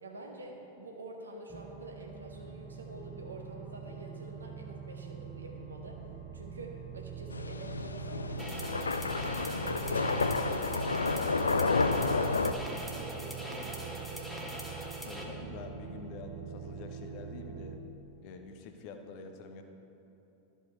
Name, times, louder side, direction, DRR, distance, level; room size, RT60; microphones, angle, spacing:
voice 1, 0.0-6.0 6.3-8.8 9.1-12.2 12.5-14.6, right 2 dB, 75° right, 0 dB, 1.3 m, -47 dB
sound 1, 1.5-17.8, right 8 dB, 20° right, 0.7 m, -44 dB
sound 2, 7.3-12.5, left 3 dB, 75° left, 0.4 m, -30 dB
sound 3, 8.4-15.2, equal, ahead, 1.3 m, -42 dB
voice 2, 15.0-17.8 18.2-19.6, left 4 dB, 45° left, 5 dB, 0.8 m, -46 dB
13.0 x 5.2 x 4.3 m, 3.0 s
figure-of-eight pair, 90°, 0 cm